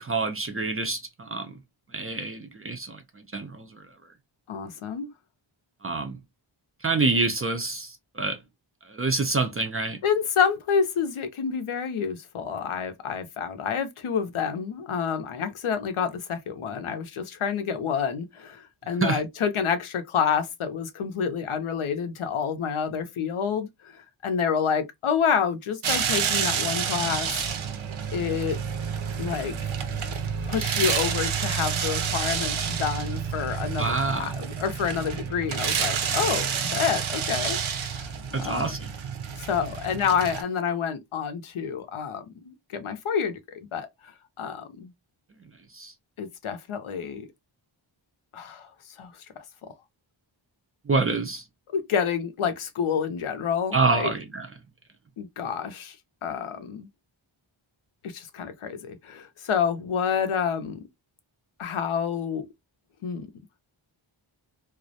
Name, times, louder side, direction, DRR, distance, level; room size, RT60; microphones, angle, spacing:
voice 1, 0.0-1.6 1.9-3.8 5.8-6.2 6.8-8.4 8.9-10.0 19.0-19.2 33.8-34.3 38.3-38.8 45.7-45.9 50.9-51.4 53.7-54.5, right 3 dB, 30° right, 0.3 m, -27 dB
voice 2, 4.5-5.1 10.0-27.3 28.1-28.6 29.2-29.6 30.5-37.6 37.9-38.0 38.4-38.8 39.4-44.1 44.4-44.9 46.2-47.3 48.3-48.7 49.0-49.3 51.7-54.1 55.2-56.0 56.2-56.9 58.0-60.8 61.6-62.5 63.0-63.3, left 7 dB, 80° left, 0.6 m, -28 dB
sound 1, 25.8-40.4, right 7 dB, 75° right, 0.5 m, -29 dB
2.3 x 2.0 x 2.6 m
wide cardioid pair, 90°, 49 cm